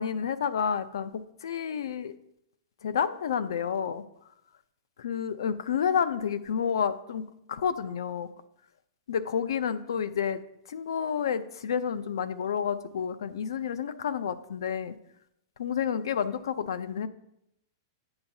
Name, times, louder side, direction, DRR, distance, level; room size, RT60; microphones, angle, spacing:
voice 1, 0.0-2.1 2.8-4.0 5.0-7.2 7.5-8.3 9.1-10.4 10.7-14.9 15.6-17.1, left 7 dB, 85° left, 14 dB, 0.5 m, -30 dB
8.7 x 7.7 x 2.7 m, 0.79 s
supercardioid pair, 165°, 2 cm